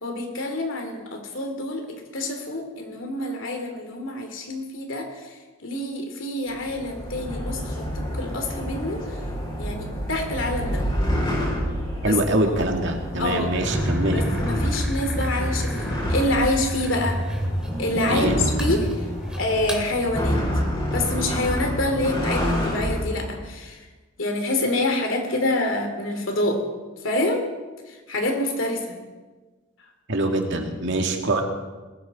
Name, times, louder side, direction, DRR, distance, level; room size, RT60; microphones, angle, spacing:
voice 1, 0.0-9.0 9.6-10.8 12.0-12.2 13.2-13.5 14.1-17.2 17.8-18.9 19.4-20.4 20.9-23.8 24.2-26.6 27.0-27.4 27.9-29.0, left 2 dB, 75° left, 4 dB, 2.9 m, -27 dB
sound 1, 6.5-23.4, equal, 30° left, 5.2 m, -28 dB
voice 2, 12.0-14.2 18.1-18.3 30.1-31.4, right 2 dB, 65° right, 3 dB, 2.2 m, -24 dB
sound 2, 13.5-19.8, equal, 5° right, 2.4 m, -31 dB
20.0 x 15.0 x 4.3 m, 1.3 s
head